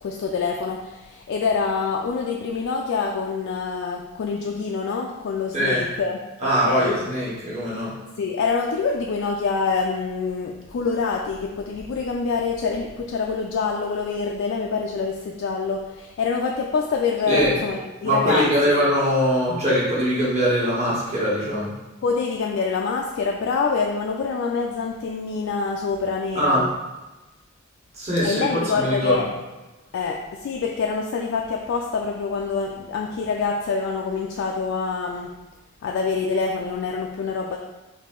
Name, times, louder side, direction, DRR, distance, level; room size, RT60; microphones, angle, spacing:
voice 1, 0.0-7.0 8.2-18.7 22.0-26.7 28.2-29.3 29.9-35.4 35.8-37.6, left 5 dB, 65° left, 0 dB, 0.3 m, -26 dB
voice 2, 6.4-7.9 17.3-17.6 18.0-21.7 26.3-26.6 28.0-29.2, equal, 35° right, -7 dB, 1.3 m, -22 dB
3.7 x 2.7 x 3.7 m, 1.1 s
head